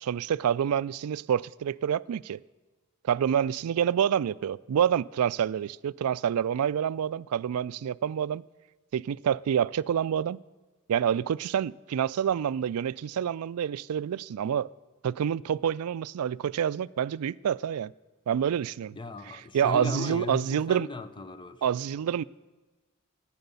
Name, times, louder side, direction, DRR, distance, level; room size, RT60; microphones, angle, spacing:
voice 1, 0.0-2.4 3.1-8.4 8.9-10.4 10.9-14.7 15.0-17.9 18.3-19.0 19.5-20.9 21.6-22.2, right 8 dB, 75° right, 0.3 m, -27 dB
voice 2, 19.0-21.6, left 3 dB, 20° left, 0.6 m, -36 dB
14.5 x 9.8 x 6.9 m
head